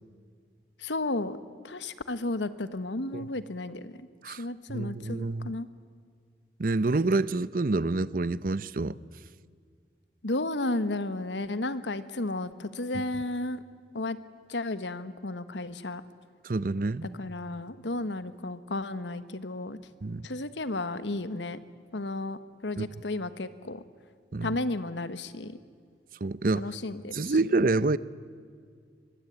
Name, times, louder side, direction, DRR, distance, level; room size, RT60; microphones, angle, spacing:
voice 1, 0.8-1.4 1.6-5.7 10.2-13.6 13.9-14.2 14.5-16.0 17.0-19.8 20.2-21.6 21.9-23.8 24.4-25.6 26.6-27.4, left 2 dB, 90° left, 13 dB, 1.3 m, -33 dB
voice 2, 4.2-5.5 6.6-9.0 16.4-17.2 20.0-20.2 22.8-22.9 24.3-24.6 26.2-26.7 27.1-28.0, right 3 dB, 50° right, 18 dB, 0.6 m, -27 dB
24.5 x 21.0 x 10.0 m, 2.1 s
head